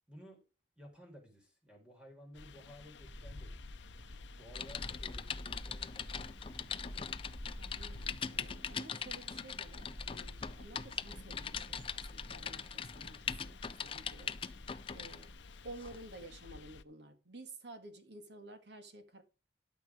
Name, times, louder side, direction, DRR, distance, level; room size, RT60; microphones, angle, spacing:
voice 1, 0.1-0.4 0.8-3.8 4.4-6.4, equal, 5° right, 4.2 m, -56 dB
sound 1, 2.3-16.8, left 3 dB, 70° left, 0.7 m, -53 dB
sound 2, 3.0-15.3, equal, 30° right, 2.1 m, -51 dB
Typing, 4.5-15.3 15.8-16.0, left 7 dB, 30° left, 0.6 m, -42 dB
voice 2, 7.6-14.6 14.9-15.3 15.6-19.2, right 2 dB, 60° right, 1.9 m, -52 dB
13.0 x 6.1 x 5.0 m
head